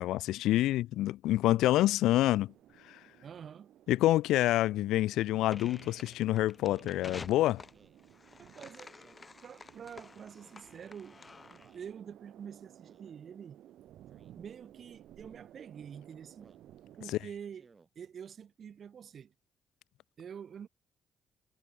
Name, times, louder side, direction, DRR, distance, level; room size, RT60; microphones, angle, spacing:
voice 1, 0.0-2.5 2.9-3.0 3.9-7.6, left 15 dB, 90° left, 0.3 m, -27 dB
sound 1, 2.4-17.3, right 12 dB, 80° right, 2.3 m, -57 dB
voice 2, 3.2-3.7 8.4-9.0 9.4-11.2 11.5-13.6 14.4-16.5 16.9-17.7 17.9-19.3 20.2-20.7, right 8 dB, 55° right, 1.6 m, -47 dB
Speech synthesizer, 5.4-5.7 6.6-7.0 7.7-8.0 8.9-9.4 10.3-10.7 11.6-11.9 12.8-13.2 14.1-14.3 15.2-15.4 16.3-16.7 17.5-17.9, right 4 dB, 30° right, 6.0 m, -64 dB
sound 2, 5.5-11.8, left 4 dB, 30° left, 4.9 m, -50 dB
cardioid pair, 90°, 0 cm